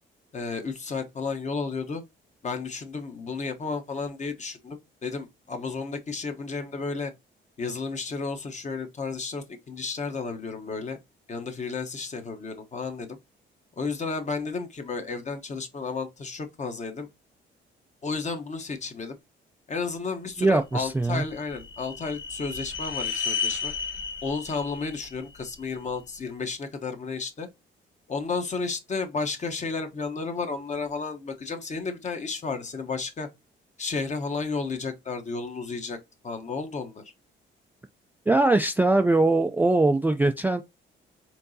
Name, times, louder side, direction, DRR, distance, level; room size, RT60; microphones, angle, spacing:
voice 1, 0.3-2.0 2.4-7.1 7.6-11.0 11.3-13.2 13.8-17.1 18.0-19.2 19.7-23.7 24.2-27.5 28.1-33.3 33.8-36.0 36.2-37.0, left 4 dB, 35° left, 1.0 m, -32 dB
voice 2, 20.4-21.2 38.3-40.6, right 2 dB, 10° right, 0.3 m, -21 dB
sound 1, 20.8-26.0, left 6 dB, 70° left, 1.1 m, -34 dB
4.5 x 3.8 x 2.7 m
cardioid pair, 90°, 20 cm